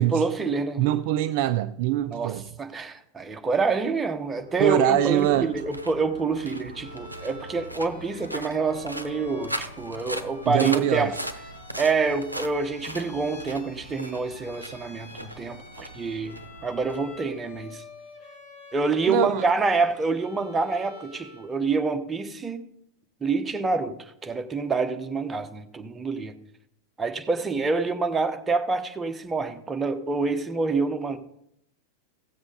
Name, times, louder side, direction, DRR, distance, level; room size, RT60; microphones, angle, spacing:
voice 1, 0.0-0.8 2.1-2.3 2.6-11.1 11.8-17.8 18.7-22.7 23.2-24.0 24.2-26.3 27.0-31.2, right 4 dB, 15° right, 1.1 m, -27 dB
voice 2, 0.8-2.5 4.6-5.5 10.4-11.1 19.1-19.5, right 13 dB, 50° right, 0.4 m, -23 dB
sound 1, 4.2-17.6, right 1 dB, 85° right, 0.7 m, -39 dB
Bowed string instrument, 6.7-21.6, left 3 dB, 50° left, 2.7 m, -47 dB
16.5 x 7.7 x 4.0 m
figure-of-eight pair, 90°, 0 cm